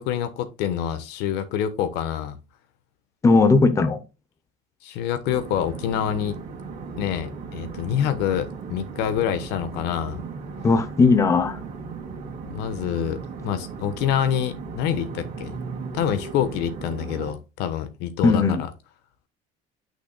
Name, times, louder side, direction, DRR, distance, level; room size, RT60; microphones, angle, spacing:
voice 1, 0.0-2.4 4.8-6.4 7.0-10.2 12.4-13.2 13.4-15.5 15.9-18.4, left 9 dB, 70° left, 1.1 m, -26 dB
voice 2, 3.2-4.0 10.6-11.6 18.2-18.6, left 4 dB, 15° left, 0.7 m, -17 dB
sound 1, 5.2-17.3, right 5 dB, 50° right, 2.1 m, -36 dB
8.3 x 6.2 x 2.2 m
cardioid pair, 135°, 18 cm